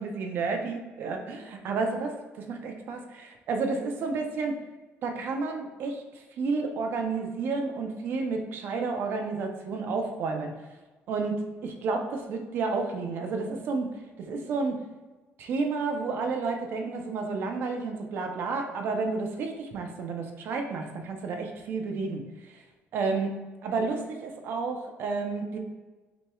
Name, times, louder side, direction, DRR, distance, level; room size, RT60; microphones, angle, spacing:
voice 1, 0.0-4.6 5.0-10.5 11.1-14.8 15.4-22.6 22.9-23.4 23.6-25.6, right 4 dB, 55° right, 4 dB, 0.6 m, -31 dB
6.1 x 3.0 x 2.3 m, 1.2 s
cardioid pair, 180°, 4 cm